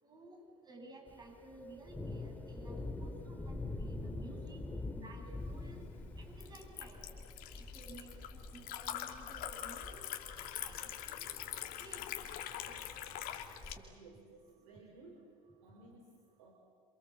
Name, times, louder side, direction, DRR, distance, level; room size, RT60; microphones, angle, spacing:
voice 1, 0.0-4.6 5.0-5.8 6.2-7.1 7.5-10.0 10.6-11.4 11.8-12.2 12.7-12.9, right 2 dB, 25° right, 1 dB, 8.0 m, -54 dB
Thunder, 1.1-13.8, left 2 dB, 10° left, 2.0 m, -46 dB
Liquid, 5.4-13.7, left 11 dB, 60° left, 2.6 m, -44 dB
voice 2, 13.9-15.3 15.6-16.5, right 3 dB, 80° right, 2 dB, 4.1 m, -57 dB
28.5 x 26.5 x 7.7 m, 2.3 s
hypercardioid pair, 80°, 17 cm